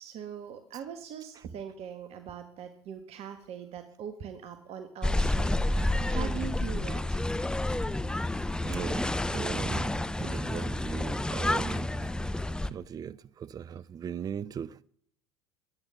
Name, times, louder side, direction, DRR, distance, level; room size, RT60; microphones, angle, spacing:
voice 1, 0.0-7.2, right 8 dB, 50° right, 1.7 m, -41 dB
sound 1, 5.0-12.7, left 1 dB, 5° left, 0.8 m, -29 dB
voice 2, 8.6-11.9 12.7-14.8, right 8 dB, 30° right, 0.5 m, -38 dB
22.5 x 9.5 x 5.9 m
hypercardioid pair, 75°, 14 cm